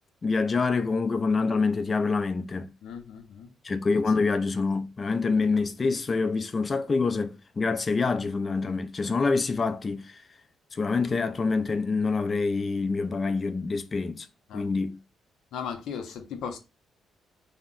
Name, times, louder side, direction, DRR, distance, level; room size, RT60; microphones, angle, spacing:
voice 1, 0.2-2.7 3.6-10.2 10.7-14.3 14.5-15.0, left 4 dB, 35° left, 0.4 m, -26 dB
voice 2, 2.8-3.5 14.5-14.7 15.5-16.6, left 7 dB, 80° left, 0.6 m, -37 dB
2.9 x 2.1 x 3.8 m
cardioid pair, 90°, 0 cm